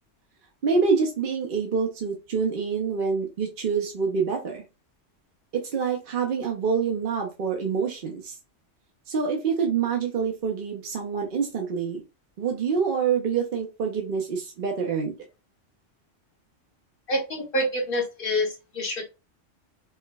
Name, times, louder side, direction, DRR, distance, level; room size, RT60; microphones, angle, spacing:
voice 1, 0.6-4.6 5.5-8.4 9.1-12.0 12.4-15.1, right 5 dB, 50° right, 0 dB, 0.7 m, -26 dB
voice 2, 17.1-19.0, left 1 dB, 50° left, 2 dB, 1.1 m, -27 dB
4.4 x 2.1 x 2.3 m, 0.28 s
omnidirectional pair, 1.3 m